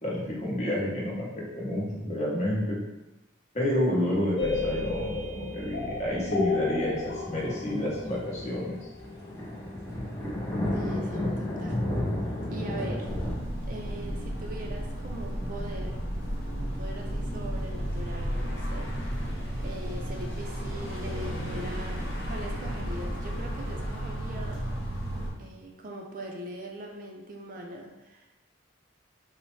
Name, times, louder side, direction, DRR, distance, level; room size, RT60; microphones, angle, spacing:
voice 1, 0.0-2.8 3.5-8.9, left 1 dB, 35° left, -5 dB, 0.9 m, -30 dB
sound 1, 4.4-10.1, left 3 dB, 60° left, 0.5 m, -33 dB
sound 2, 7.2-13.3, left 1 dB, 15° left, 0.6 m, -32 dB
voice 2, 10.7-13.1 13.6-16.1 16.5-19.0 19.6-24.7 25.4-28.4, right 1 dB, 45° right, 1 dB, 0.4 m, -41 dB
sound 3, 13.0-25.3, equal, 80° left, 0.9 m, -33 dB
4.0 x 2.0 x 3.1 m, 0.98 s
head